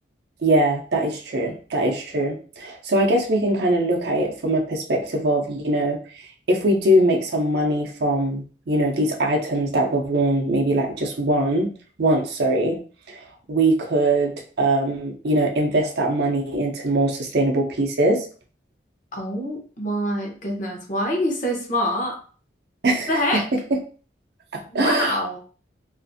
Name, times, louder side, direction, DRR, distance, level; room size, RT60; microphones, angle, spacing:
voice 1, 0.4-6.0 6.5-11.7 12.0-12.8 13.1-14.3 14.6-18.3 22.8-23.4 24.5-25.1, right 1 dB, 60° right, 2 dB, 0.5 m, -22 dB
voice 2, 19.1-22.1 23.1-23.4 24.7-25.4, equal, 45° left, 0 dB, 0.7 m, -25 dB
2.5 x 2.4 x 2.5 m, 0.41 s
head